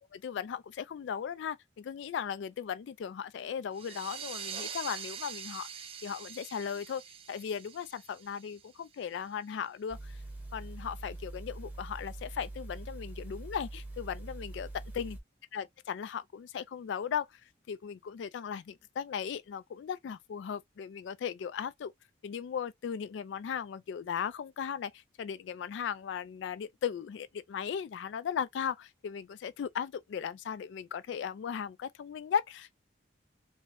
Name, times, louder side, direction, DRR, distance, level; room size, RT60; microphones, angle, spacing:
voice 1, 0.1-7.0 7.3-10.2 10.5-14.7 14.9-15.2 15.5-17.4 17.7-21.9 22.2-32.7, left 7 dB, 75° left, 0.3 m, -37 dB
sound 1, 3.7-9.1, right 7 dB, 30° right, 0.4 m, -44 dB
sound 2, 9.9-15.2, right 2 dB, 10° right, 0.9 m, -43 dB
3.0 x 2.7 x 3.0 m
head